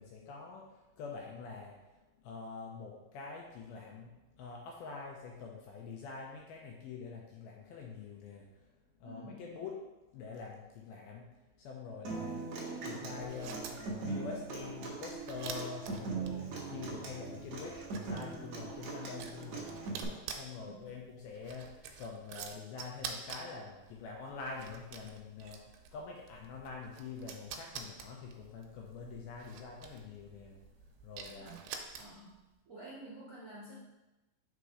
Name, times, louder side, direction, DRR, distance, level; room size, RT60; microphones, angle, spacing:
voice 1, 0.0-8.7 9.0-9.9 10.1-20.0 20.3-30.6 31.0-31.6, left 5 dB, 80° left, -1 dB, 2.3 m, -46 dB
voice 2, 9.0-9.5 16.3-16.4 20.5-20.9 25.9-26.0 31.3-31.6 31.9-33.7, right 1 dB, 45° right, -10 dB, 1.1 m, -51 dB
Human voice / Acoustic guitar, 12.0-20.0, right 3 dB, 70° right, 1.7 m, -41 dB
sound 1, 13.2-32.4, right 6 dB, 85° right, 2.7 m, -49 dB
5.8 x 4.0 x 4.8 m, 1.0 s
omnidirectional pair, 4.8 m